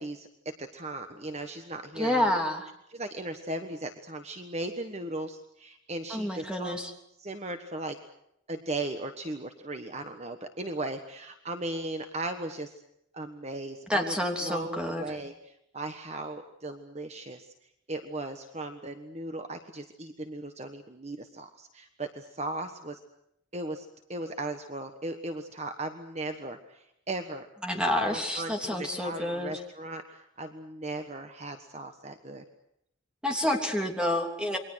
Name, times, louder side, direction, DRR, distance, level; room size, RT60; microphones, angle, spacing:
voice 1, 0.0-2.4 2.9-6.8 7.2-8.0 8.5-12.7 13.1-17.5 17.9-23.0 23.5-32.4, right 2 dB, 35° right, 7 dB, 1.4 m, -37 dB
voice 2, 2.0-2.7 6.1-6.9 13.9-15.0 27.6-29.5 33.2-34.6, left 1 dB, 5° right, 3 dB, 3.1 m, -28 dB
28.5 x 23.0 x 6.4 m, 0.76 s
head